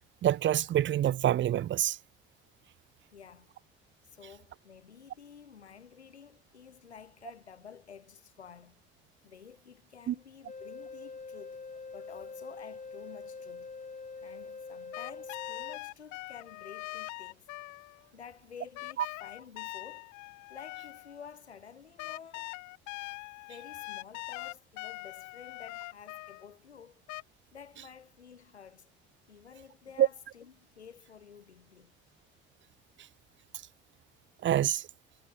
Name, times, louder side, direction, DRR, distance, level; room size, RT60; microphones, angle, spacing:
voice 1, 0.2-2.0 10.1-10.2 30.0-30.1 34.4-34.9, right 11 dB, 35° right, 0.7 m, -26 dB
voice 2, 3.1-3.6 4.0-8.8 9.2-11.6 11.9-13.7 14.2-17.5 18.1-20.1 20.5-22.6 23.5-27.0 27.5-28.9 29.3-31.9, left 7 dB, 85° left, 3.8 m, -51 dB
sound 1, 10.5-15.8, left 4 dB, 25° left, 3.9 m, -44 dB
sound 2, 14.9-18.1 18.8-21.3 22.0-26.5 27.1-27.2, left 22 dB, 60° left, 3.2 m, -42 dB
figure-of-eight pair, 55°, 32 cm